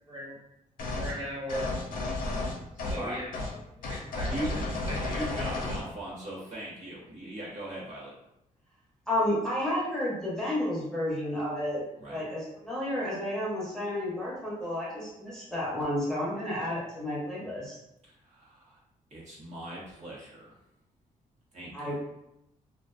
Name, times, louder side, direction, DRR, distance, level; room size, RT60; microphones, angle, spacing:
sound 1, 0.8-1.1 1.5-3.0 3.3-3.5 3.8-5.9, left 2 dB, 75° left, 0.6 m, -32 dB
voice 1, 0.9-2.5 2.9-3.3 3.9-5.2, equal, 30° right, -5 dB, 1.0 m, -39 dB
voice 2, 4.2-4.7 5.0-8.1 12.0-12.2 18.2-18.8 19.1-20.5 21.5-21.9, right 1 dB, 55° right, -6 dB, 0.8 m, -39 dB
voice 3, 9.1-11.8 12.1-17.8 21.7-22.0, left 1 dB, 5° left, -8 dB, 0.7 m, -31 dB
2.4 x 2.2 x 2.4 m, 0.84 s
cardioid pair, 125°, 14 cm